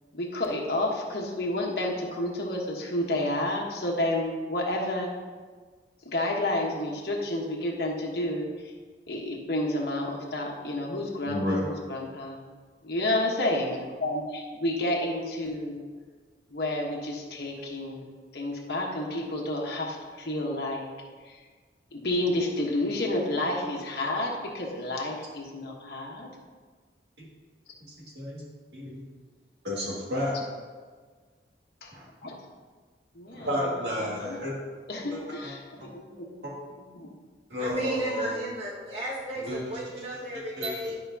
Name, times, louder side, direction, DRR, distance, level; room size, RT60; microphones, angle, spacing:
voice 1, 0.1-5.1 6.1-8.7 9.1-12.4 12.8-15.8 16.5-18.1 18.3-20.9 21.2-21.4 21.9-26.3 31.8-31.9 32.2-32.4 33.1-33.5 34.0-34.5 34.9-36.4 36.8-37.1, left 1 dB, 60° left, -2 dB, 1.2 m, -30 dB
voice 2, 11.2-11.7 27.2-27.3 27.8-28.4 28.7-29.0 29.6-30.4 31.9-32.1 33.3-34.5 35.1-35.2 35.8-35.9 36.4-36.5 37.5-38.4 39.4-39.6 40.6-40.7, equal, 70° right, -4 dB, 2.1 m, -31 dB
voice 3, 37.6-41.0, right 1 dB, 35° right, -7 dB, 1.8 m, -33 dB
12.0 x 5.0 x 2.8 m, 1.5 s
head